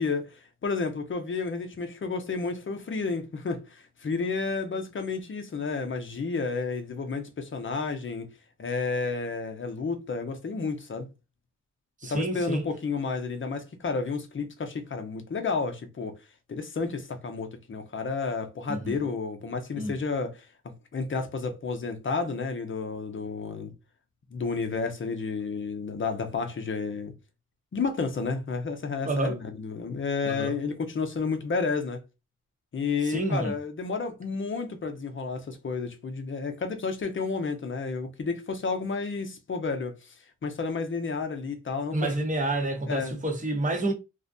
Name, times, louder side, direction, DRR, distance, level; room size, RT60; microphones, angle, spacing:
voice 1, 0.0-8.3 8.6-11.1 12.1-16.2 16.5-23.7 24.3-27.1 27.7-32.0 32.7-40.1 40.4-42.1 42.9-43.2, left 4 dB, 40° left, 0.6 m, -31 dB
voice 2, 12.0-12.6 18.7-19.0 19.8-19.9 29.0-29.4 30.2-30.6 33.0-33.5 41.9-43.9, right 2 dB, 25° right, 0.8 m, -29 dB
2.5 x 2.1 x 2.5 m
cardioid pair, 75°, 30 cm